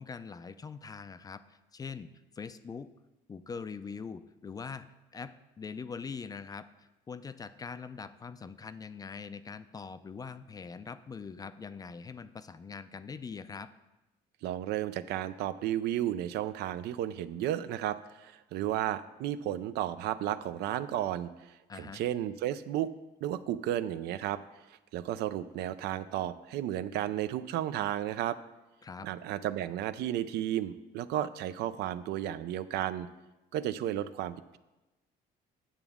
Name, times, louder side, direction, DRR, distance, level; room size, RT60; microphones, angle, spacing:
voice 1, 0.0-2.1 2.4-2.9 3.3-13.7 21.7-22.0 28.8-29.1, left 5 dB, 20° left, 13 dB, 0.3 m, -43 dB
voice 2, 14.4-22.9 23.2-24.4 24.9-28.4 29.0-33.1 33.5-34.6, right 12 dB, 75° right, 13 dB, 0.4 m, -33 dB
8.9 x 7.0 x 3.6 m, 1.1 s
cardioid pair, 110°, 17 cm